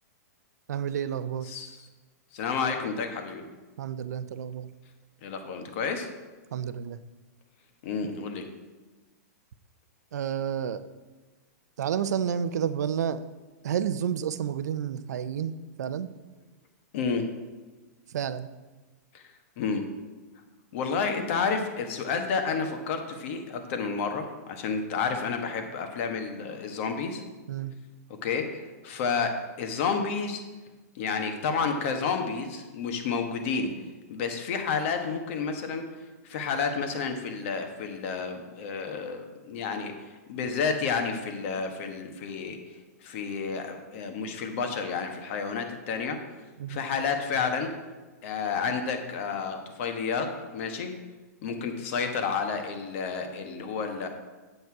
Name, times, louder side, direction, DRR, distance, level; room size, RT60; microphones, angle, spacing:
voice 1, 0.7-1.5 3.8-4.7 6.5-7.0 10.1-10.8 11.8-13.2 13.6-16.1 18.1-18.5 27.5-27.7 46.6-46.8, right 8 dB, 75° right, 13 dB, 0.6 m, -30 dB
voice 2, 1.5-1.8 2.3-3.5 5.2-6.1 7.8-8.5 16.9-17.3 19.1-19.2 19.6-19.9 20.7-27.2 28.1-30.4 30.9-33.7 34.1-35.8 36.2-46.2 46.7-47.7 48.2-50.9 51.4-54.1, left 5 dB, 50° left, 5 dB, 1.5 m, -30 dB
8.1 x 8.0 x 4.7 m, 1.2 s
hypercardioid pair, 145°, 9 cm